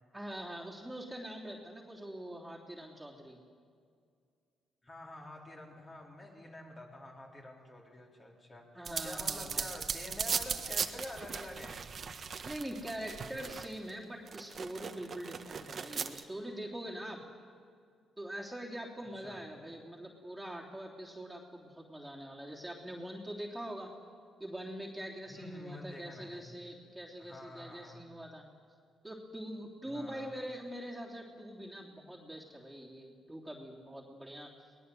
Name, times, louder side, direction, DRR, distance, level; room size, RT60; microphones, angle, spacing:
voice 1, 0.1-3.4 8.7-9.6 12.4-17.2 18.2-23.9 24.4-28.4 29.0-34.5, right 1 dB, 5° right, -4 dB, 3.3 m, -43 dB
voice 2, 4.8-11.8 19.1-19.5 25.3-26.5 27.2-28.1 29.8-30.3, left 1 dB, 30° left, -1 dB, 4.1 m, -48 dB
sound 1, 8.8-13.9 14.3-16.2, right 6 dB, 45° right, 1.4 m, -38 dB
23.0 x 19.5 x 7.8 m, 2.2 s
cardioid pair, 90°, 0 cm